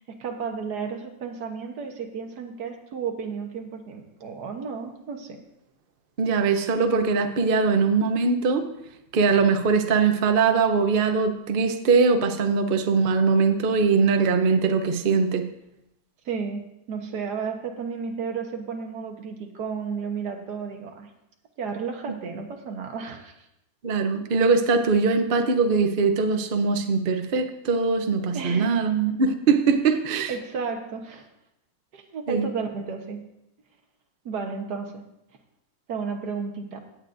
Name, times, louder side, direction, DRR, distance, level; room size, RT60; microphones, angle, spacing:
voice 1, 0.1-5.4 16.2-21.1 21.6-23.4 28.3-28.9 30.3-31.3 31.9-33.2 34.2-35.0 35.9-36.8, right 5 dB, 60° right, 4 dB, 1.6 m, -33 dB
voice 2, 6.2-8.7 9.1-15.5 22.1-22.2 23.8-30.3 32.3-32.5, right 4 dB, 80° right, 7 dB, 0.4 m, -21 dB
16.5 x 9.3 x 2.6 m, 0.85 s
omnidirectional pair, 2.1 m